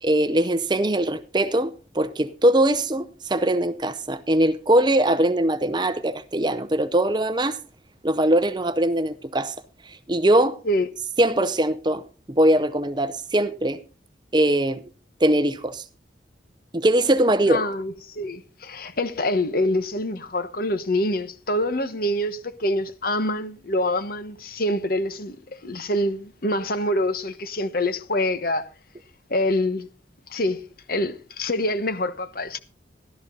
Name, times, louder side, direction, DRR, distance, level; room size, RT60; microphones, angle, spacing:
voice 1, 0.0-7.6 8.0-9.5 9.9-10.6 11.2-12.0 12.3-13.8 14.3-14.8 15.2-15.8 16.7-17.6, right 1 dB, 25° right, 0.6 m, -21 dB
voice 2, 17.5-28.7 29.3-29.9 30.3-32.6, left 1 dB, 50° left, 1.2 m, -26 dB
14.0 x 12.5 x 3.9 m
head